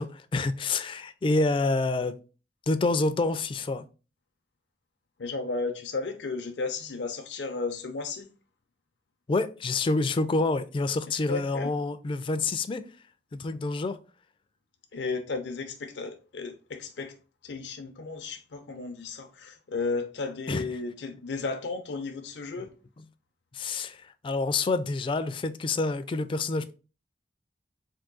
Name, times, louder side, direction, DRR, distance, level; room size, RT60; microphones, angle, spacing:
voice 1, 0.0-2.2 2.7-3.8 9.3-12.8 13.3-14.0 20.5-20.6 22.5-22.7 23.5-26.7, left 3 dB, 30° left, 0.3 m, -27 dB
voice 2, 5.2-8.3 11.1-11.7 14.9-17.1 17.4-22.7, left 4 dB, 80° left, 0.5 m, -34 dB
3.7 x 2.6 x 3.7 m
head